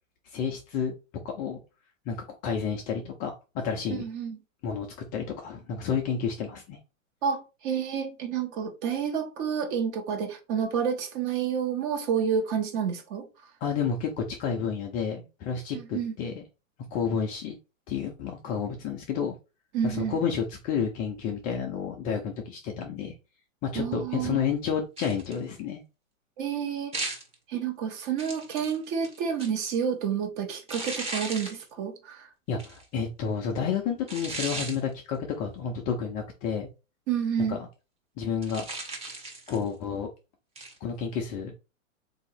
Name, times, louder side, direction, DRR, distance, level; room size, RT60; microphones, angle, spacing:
voice 1, 0.3-0.9 1.2-1.6 2.1-2.2 2.4-4.0 4.6-4.9 5.1-6.8 13.6-16.4 16.9-17.6 17.9-19.4 19.8-23.1 23.6-25.8 32.5-36.7 37.5-37.7 38.2-38.6 39.5-40.1 40.8-41.5, left 6 dB, 20° left, 0.4 m, -30 dB
voice 2, 3.9-4.4 7.2-13.3 15.7-16.1 19.7-20.2 23.7-24.4 26.4-26.9 27.5-32.3 37.1-37.6, right 7 dB, 40° right, 1.2 m, -29 dB
sound 1, 25.0-25.4 26.9-27.3 28.2-29.7 30.7-31.6 32.6-32.8 34.1-34.8 38.4-39.7 40.6-40.8, right 2 dB, 15° right, 1.0 m, -36 dB
3.8 x 2.8 x 4.2 m
hypercardioid pair, 125°, 41 cm